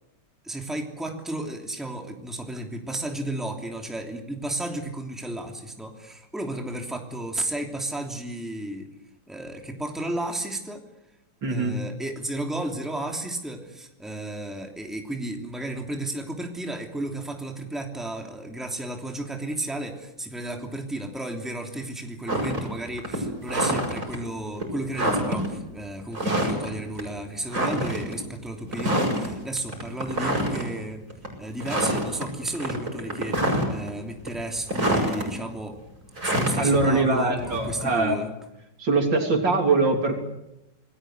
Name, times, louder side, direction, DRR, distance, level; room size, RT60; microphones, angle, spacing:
voice 1, 0.4-8.9 9.3-10.8 11.5-31.0 31.4-35.8 36.2-38.3, right 1 dB, ahead, 2 dB, 2.9 m, -33 dB
voice 2, 11.4-11.7 36.6-38.2 38.8-40.1, right 3 dB, 75° right, 3 dB, 4.0 m, -22 dB
sound 1, 22.3-22.7 23.0-24.2 24.6-24.7 24.9-25.5 26.1-26.7 27.0-27.1 27.5-28.2 28.7-29.3 29.7-30.7 31.1-31.3 31.6-32.3 32.6-33.9 34.3-35.2 36.2-37.9, right 1 dB, 40° right, 6.8 m, -26 dB
27.5 x 20.0 x 8.0 m, 0.91 s
omnidirectional pair, 2.0 m